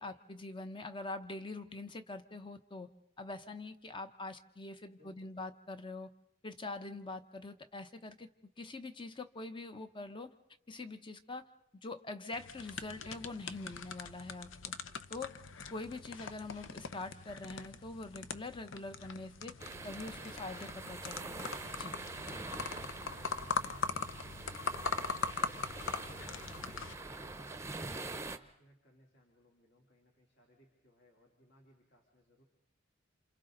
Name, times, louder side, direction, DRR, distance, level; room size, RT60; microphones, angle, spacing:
voice 1, 0.0-2.9 3.2-6.1 6.4-10.3 10.7-11.5 11.8-14.7 15.1-15.4 15.7-19.6 19.8-21.5 21.7-22.0, left 2 dB, 25° left, 9 dB, 0.9 m, -44 dB
voice 2, 5.0-5.5 23.1-25.6 26.0-26.3 26.9-32.4, right 1 dB, 60° left, 0 dB, 3.4 m, -65 dB
sound 1, 12.3-26.9, left 5 dB, 90° left, 0.8 m, -41 dB
sound 2, 19.6-28.4, right 3 dB, 15° right, 0.8 m, -45 dB
29.5 x 28.0 x 3.9 m, 0.79 s
head